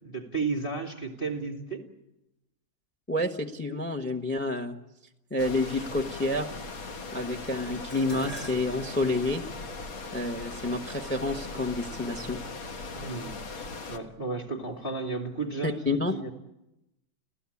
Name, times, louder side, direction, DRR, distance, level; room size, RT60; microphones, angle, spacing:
voice 1, 0.0-1.8 12.9-16.3, right 4 dB, 25° left, 3 dB, 2.7 m, -34 dB
voice 2, 3.1-4.8 5.3-6.5 7.1-9.4 10.1-12.4 15.6-16.2, left 2 dB, 10° left, 6 dB, 0.8 m, -29 dB
sound 1, 5.4-14.0, left 3 dB, 75° left, 2.3 m, -39 dB
Dishes pots and pans, 7.9-12.3 13.2-13.6 13.9-14.8 15.0-15.1, equal, 55° left, 4.8 m, -47 dB
28.5 x 16.0 x 8.5 m, 0.93 s
omnidirectional pair, 2.3 m